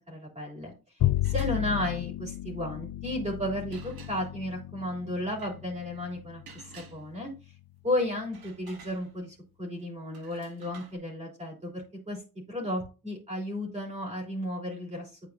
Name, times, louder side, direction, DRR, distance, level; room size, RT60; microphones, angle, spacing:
voice 1, 0.1-0.7 1.2-7.3 7.8-12.2 12.5-15.2, left 1 dB, 20° right, -3 dB, 3.3 m, -33 dB
Bowed string instrument, 1.0-7.5, left 14 dB, 60° left, 0.5 m, -33 dB
sound 1, 1.2-1.6 3.7-4.4 5.3-5.6 6.5-7.4 8.1-9.5 10.1-11.0, right 5 dB, 90° right, 1.5 m, -51 dB
9.9 x 4.6 x 2.7 m, 0.32 s
wide cardioid pair, 145°, 35 cm